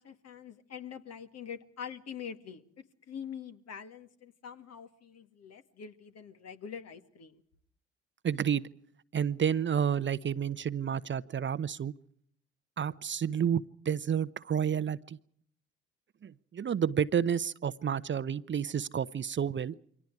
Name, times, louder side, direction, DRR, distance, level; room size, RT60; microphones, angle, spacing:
voice 1, 0.0-2.6 3.1-7.4, left 7 dB, 50° left, 9 dB, 2.0 m, -44 dB
voice 2, 8.2-8.6 9.1-11.9 12.8-15.2 16.2-19.7, right 8 dB, 35° right, 16 dB, 0.9 m, -30 dB
29.0 x 24.5 x 4.8 m, 0.63 s
figure-of-eight pair, 45°, 33 cm